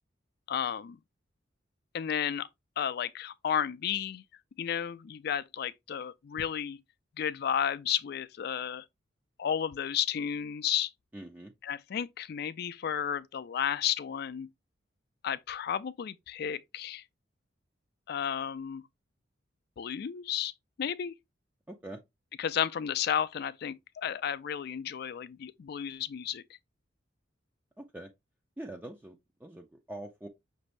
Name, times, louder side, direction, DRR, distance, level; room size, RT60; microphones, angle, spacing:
voice 1, 0.5-1.0 1.9-2.5 2.8-4.2 4.6-6.8 7.2-8.8 9.4-10.9 11.6-14.5 15.2-17.0 18.1-18.8 19.8-20.5 20.8-21.1 22.4-26.4, left 9 dB, 55° left, 0.3 m, -32 dB
voice 2, 11.1-11.5 21.7-22.0 27.8-28.1 28.6-30.3, right 1 dB, 10° right, 0.4 m, -44 dB
5.9 x 2.6 x 3.1 m
head